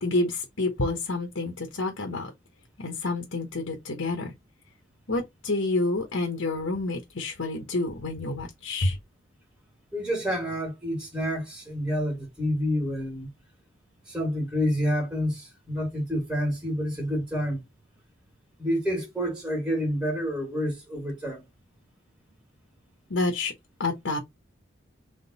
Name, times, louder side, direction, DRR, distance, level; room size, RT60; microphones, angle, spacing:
voice 1, 0.0-2.3 2.8-4.3 5.1-9.0 23.1-23.5 23.8-24.2, left 2 dB, 90° left, 1.2 m, -28 dB
voice 2, 9.9-13.3 14.1-17.6 18.6-21.5, equal, 5° right, 2.1 m, -28 dB
3.8 x 3.3 x 4.1 m
head